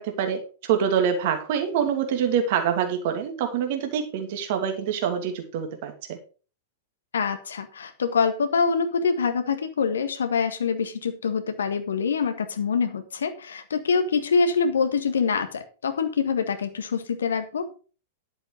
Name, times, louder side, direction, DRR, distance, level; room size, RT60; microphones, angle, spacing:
voice 1, 0.0-6.2, right 8 dB, 50° right, 6 dB, 2.7 m, -25 dB
voice 2, 7.1-17.7, left 5 dB, 70° left, 9 dB, 1.6 m, -25 dB
11.0 x 7.9 x 5.0 m, 0.36 s
figure-of-eight pair, 100°, 0 cm